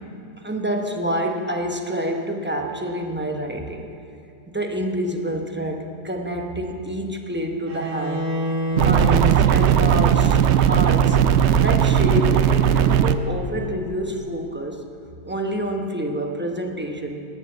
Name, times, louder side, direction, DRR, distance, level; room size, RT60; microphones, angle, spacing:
voice 1, 0.4-3.9 4.5-8.3 8.7-11.2 11.6-14.8 15.3-17.3, right 1 dB, 10° right, 2 dB, 0.7 m, -27 dB
Bowed string instrument, 7.7-13.7, equal, 45° right, 1.9 m, -31 dB
sound 1, 8.8-13.2, right 9 dB, 85° right, 0.6 m, -17 dB
19.5 x 7.1 x 7.2 m, 2.6 s
omnidirectional pair, 1.8 m